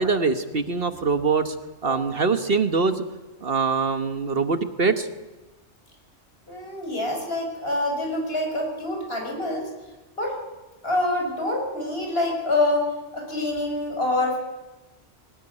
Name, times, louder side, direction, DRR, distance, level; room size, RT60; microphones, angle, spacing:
voice 1, 0.0-1.6 1.8-3.0 3.4-5.1, right 4 dB, 50° right, 9 dB, 1.4 m, -23 dB
voice 2, 6.5-9.7 10.2-10.4 10.8-14.4, left 2 dB, 55° left, 1 dB, 6.5 m, -26 dB
21.5 x 19.0 x 9.9 m, 1.1 s
omnidirectional pair, 1.2 m